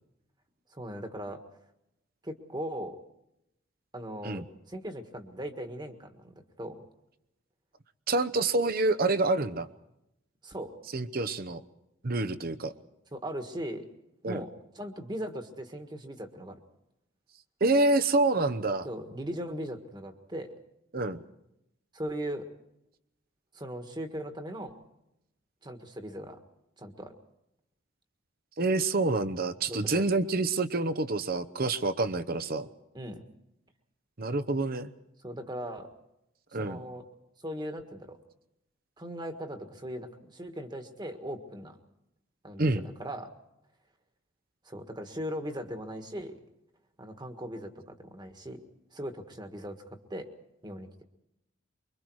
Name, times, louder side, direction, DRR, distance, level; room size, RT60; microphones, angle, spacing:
voice 1, 0.7-1.4 2.2-3.0 3.9-6.8 10.4-10.7 13.1-13.8 14.2-16.6 18.8-20.6 21.9-22.5 23.5-24.8 25.6-26.4 26.8-27.1 29.7-30.1 32.9-33.2 35.2-35.9 36.5-37.1 37.4-38.2 39.0-41.8 42.4-43.3 44.6-46.3 47.0-48.6 48.9-50.3 50.6-50.9, equal, 20° right, 6 dB, 1.6 m, -39 dB
voice 2, 8.1-9.7 10.9-11.6 12.0-12.7 14.2-14.4 17.6-18.9 20.9-21.2 28.6-32.7 34.2-34.9 36.5-36.8 42.6-42.8, right 2 dB, 50° right, 12 dB, 0.9 m, -27 dB
24.5 x 23.5 x 4.8 m, 0.84 s
head